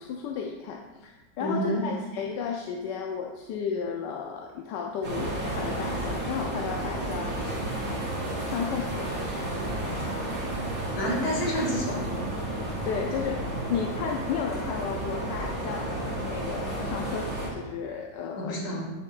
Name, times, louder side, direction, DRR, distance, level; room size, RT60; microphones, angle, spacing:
voice 1, 0.0-7.3 8.4-9.1 12.8-18.6, left 6 dB, 70° left, 2 dB, 1.1 m, -33 dB
voice 2, 1.4-1.8 11.0-12.1 18.4-18.8, equal, 55° left, -1 dB, 2.1 m, -29 dB
sound 1, 5.0-17.5, right 1 dB, 80° right, 3.6 m, -32 dB
9.5 x 7.4 x 2.4 m, 1.2 s
omnidirectional pair, 2.1 m